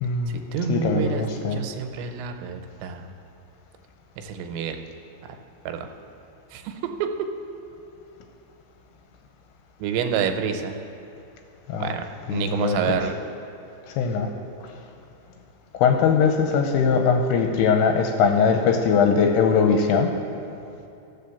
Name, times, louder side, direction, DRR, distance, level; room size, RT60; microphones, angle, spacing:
voice 1, 0.0-0.4 0.7-1.6 11.7-12.0 12.3-13.1 13.9-14.3 15.7-20.1, left 6 dB, 80° left, 4 dB, 2.5 m, -21 dB
voice 2, 0.5-1.2 1.5-3.1 4.2-4.8 5.7-5.9 6.5-6.7 9.8-10.8 11.8-12.0 12.3-13.2, right 7 dB, 85° right, 6 dB, 3.0 m, -28 dB
14.5 x 5.0 x 6.9 m, 2.7 s
omnidirectional pair, 5.1 m